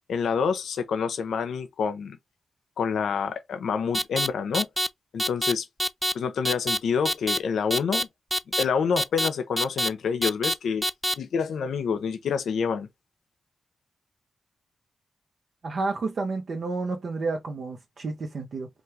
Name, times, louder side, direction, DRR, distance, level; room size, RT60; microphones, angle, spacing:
voice 1, 0.1-2.2 2.8-4.7 5.1-5.7 6.1-8.1 8.6-10.9 11.2-12.9, left 6 dB, 90° left, 0.8 m, -27 dB
sound 1, 3.9-4.3 4.5-4.9 5.2-5.5 5.8-6.1 6.4-6.8 7.1-7.4 7.7-8.0 8.3-8.6 9.0-9.3 9.6-9.9 10.2-10.5 10.8-11.1, equal, 5° right, 0.5 m, -25 dB
voice 2, 15.6-18.7, right 3 dB, 65° right, 1.1 m, -30 dB
5.1 x 2.4 x 3.3 m
cardioid pair, 75°, 0 cm